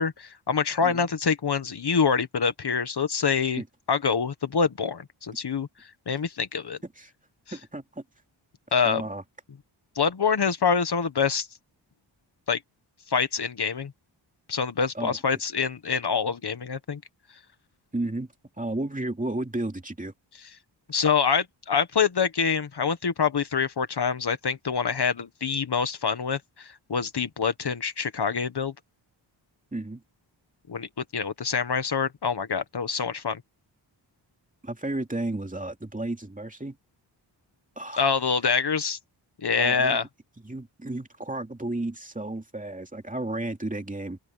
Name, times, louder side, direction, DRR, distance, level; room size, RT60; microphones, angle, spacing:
voice 1, 0.0-3.6 3.9-6.8 8.7-9.0 9.9-11.5 12.5-12.6 13.1-13.9 14.5-17.0 20.9-28.7 30.7-33.4 38.0-39.0 39.4-40.0, left 6 dB, 55° left, 1.5 m, -26 dB
voice 2, 7.5-8.0 8.8-9.2 14.9-15.2 17.9-18.3 18.6-20.1 29.7-30.0 34.6-36.8 37.8-38.1 39.6-40.0 40.4-44.2, right 2 dB, 15° right, 2.7 m, -33 dB
open air
wide cardioid pair, 95°, 47 cm